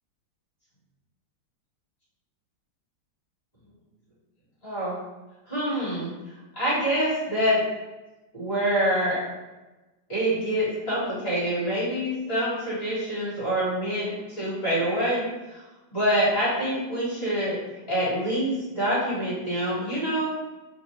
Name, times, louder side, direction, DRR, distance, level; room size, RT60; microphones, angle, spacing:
voice 1, 4.6-5.0 5.5-6.1 6.5-7.6 8.3-9.2 10.1-15.2 15.5-15.6 15.9-17.6 17.9-20.3, equal, 35° left, -10 dB, 1.4 m, -26 dB
3.1 x 2.1 x 2.9 m, 1.1 s
omnidirectional pair, 2.0 m